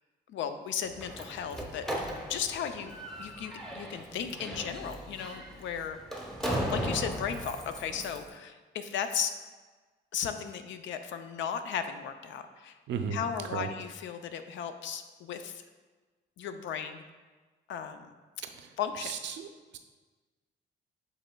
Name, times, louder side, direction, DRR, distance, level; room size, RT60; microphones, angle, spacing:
voice 1, 0.3-6.0 6.7-9.3 10.1-12.8 13.1-15.6 16.4-17.0 17.7-18.1 18.8-19.1, left 8 dB, 70° left, 8 dB, 0.4 m, -36 dB
Slam, 0.8-8.3, equal, ahead, 0.7 m, -37 dB
voice 2, 12.9-13.2 13.5-13.7 18.5-18.7 19.0-19.5 19.7-19.8, right 7 dB, 65° right, 6 dB, 0.5 m, -34 dB
7.5 x 3.1 x 2.2 m, 1.3 s
cardioid pair, 90°, 20 cm